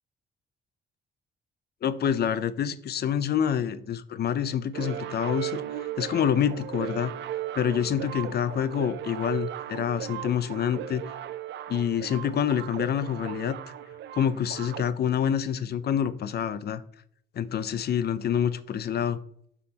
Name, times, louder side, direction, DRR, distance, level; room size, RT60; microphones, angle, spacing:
voice 1, 1.8-7.1 7.5-11.0 11.7-13.6 14.1-16.8 17.3-19.2, left 8 dB, 55° left, 14 dB, 0.6 m, -27 dB
sound 1, 4.7-14.8, right 12 dB, 65° right, 0.5 m, -37 dB
7.7 x 5.8 x 2.9 m, 0.65 s
cardioid pair, 90°, 20 cm